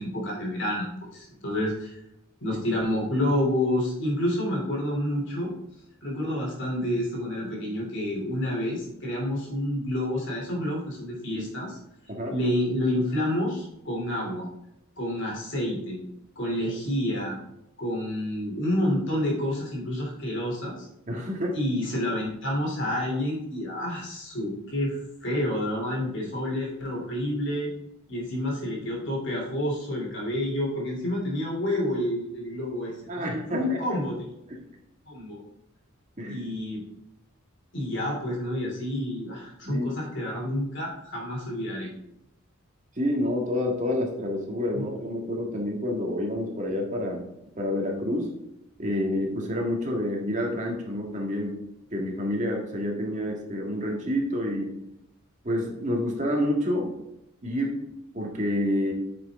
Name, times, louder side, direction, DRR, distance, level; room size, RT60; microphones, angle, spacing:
voice 1, 0.0-2.0 2.4-5.5 6.0-11.8 12.3-14.5 15.0-16.0 16.3-17.4 17.8-20.9 21.5-27.7 28.1-34.1 35.1-35.4 36.3-36.8 37.7-41.9 44.7-44.8, left 1 dB, 55° left, -1 dB, 3.2 m, -29 dB
voice 2, 21.1-21.5 33.1-33.8 34.5-34.6 36.2-36.4 39.6-39.9 43.0-47.3 47.6-48.3 48.8-51.6 51.9-54.7 55.4-56.9 57.4-57.8 58.1-58.9, left 1 dB, 35° right, 0 dB, 1.8 m, -28 dB
8.6 x 6.5 x 3.7 m, 0.83 s
head